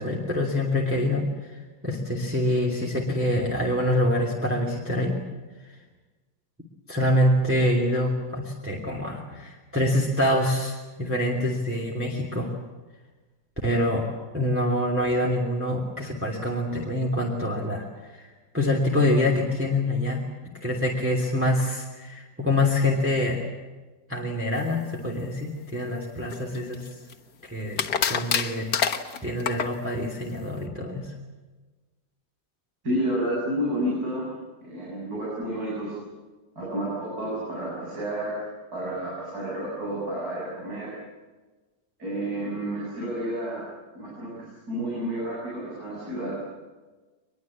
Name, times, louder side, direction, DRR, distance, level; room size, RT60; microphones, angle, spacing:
voice 1, 0.0-5.2 6.9-12.5 13.6-17.9 18.1-18.3 18.5-20.2 20.6-23.4 24.1-26.8 27.5-28.7 29.2-31.1, left 1 dB, 5° right, -2 dB, 2.9 m, -25 dB
sound 1, 26.3-27.1 27.8-29.8, left 7 dB, 60° left, 1.8 m, -26 dB
voice 2, 32.8-34.3 34.6-36.0 36.6-38.5 38.7-40.9 42.0-43.7 43.9-46.4, right 1 dB, 55° right, -6 dB, 8.2 m, -30 dB
23.5 x 21.5 x 8.7 m, 1.2 s
omnidirectional pair, 2.0 m